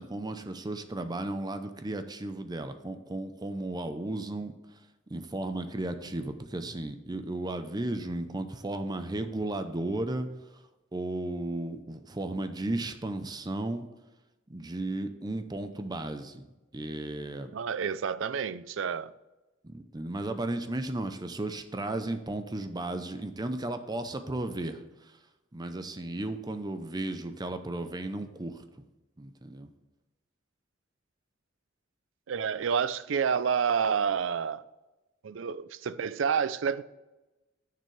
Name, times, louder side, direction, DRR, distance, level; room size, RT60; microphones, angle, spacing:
voice 1, 0.0-4.8 5.1-10.3 10.5-10.6 10.9-13.8 14.5-16.4 16.7-17.5 19.6-25.2 25.5-28.8 29.2-29.7, right 2 dB, 20° right, 0.6 m, -34 dB
voice 2, 17.5-19.1 32.3-34.6 35.2-36.8, right 6 dB, 70° right, 0.4 m, -29 dB
10.0 x 6.7 x 3.2 m
head